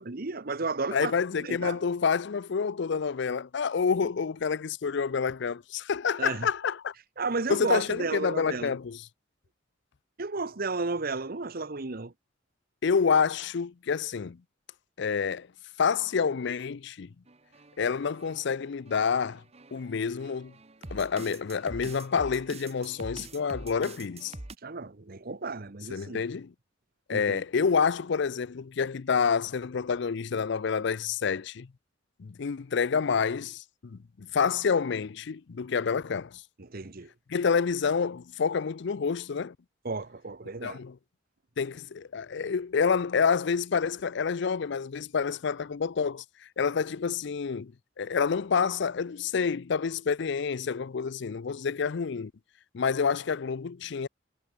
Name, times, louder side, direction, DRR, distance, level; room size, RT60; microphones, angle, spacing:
voice 1, 0.0-1.1 1.4-1.8 6.2-6.5 7.2-8.8 10.2-12.1 24.6-26.2 27.1-27.4 36.6-37.1 39.8-40.8, right 3 dB, 50° right, 1.1 m, -33 dB
voice 2, 0.9-6.9 7.5-9.0 12.8-14.4 15.0-15.5 15.8-17.1 17.8-19.4 19.7-20.5 20.9-24.3 25.9-26.5 27.1-31.7 32.2-36.4 37.3-39.5 40.6-41.0 41.6-46.2 46.6-47.7 48.0-52.3 52.7-54.1, left 6 dB, 65° left, 0.5 m, -28 dB
sound 1, 17.3-24.5, right 2 dB, 35° right, 1.4 m, -45 dB
head